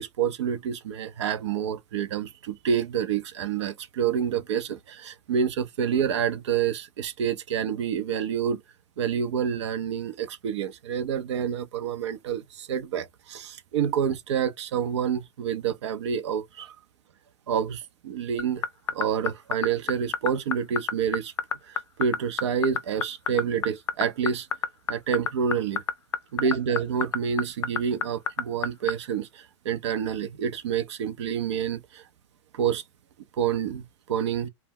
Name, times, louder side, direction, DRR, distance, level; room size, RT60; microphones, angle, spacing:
voice 1, 0.0-8.6 9.0-16.8 17.5-18.7 18.9-21.3 21.7-24.5 24.9-25.8 26.3-32.0 32.5-32.8 33.4-34.5, right 7 dB, 75° right, 0.5 m, -28 dB
sound 1, 18.4-28.9, left 7 dB, 90° left, 0.4 m, -26 dB
2.1 x 2.0 x 3.4 m
hypercardioid pair, 105°, 15 cm